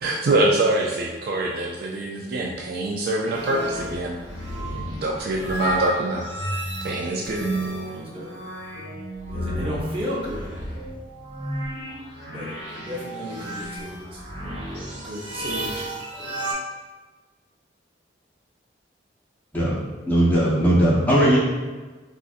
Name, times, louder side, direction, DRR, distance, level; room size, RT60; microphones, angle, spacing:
voice 1, 0.0-4.2 4.7-6.3 6.8-7.5, right 2 dB, 55° right, -1 dB, 0.3 m, -24 dB
sound 1, 3.2-16.5, right 1 dB, 80° right, 0.9 m, -33 dB
voice 2, 7.6-8.3 9.3-10.5 12.3-14.7 14.9-16.5, equal, 30° right, -5 dB, 0.7 m, -35 dB
voice 3, 20.1-21.4, right 1 dB, 10° left, -8 dB, 0.7 m, -18 dB
3.9 x 2.4 x 2.4 m, 1.3 s
head